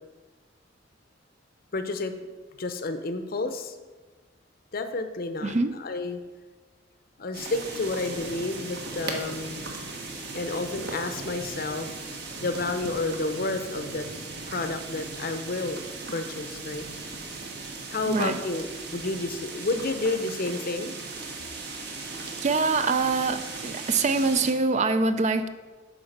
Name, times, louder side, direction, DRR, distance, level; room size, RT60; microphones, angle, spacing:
voice 1, 1.7-2.3 2.6-3.8 4.7-6.2 7.2-9.7 10.3-11.9 12.4-14.1 14.5-15.8 16.1-16.8 17.9-18.7 18.9-20.9, left 2 dB, 50° left, 8 dB, 0.7 m, -30 dB
voice 2, 5.4-5.7 18.1-18.4 22.4-25.5, right 3 dB, 35° right, 10 dB, 0.4 m, -24 dB
sound 1, 7.3-24.5, right 3 dB, 55° right, 1.2 m, -37 dB
9.0 x 3.8 x 6.5 m, 1.3 s
head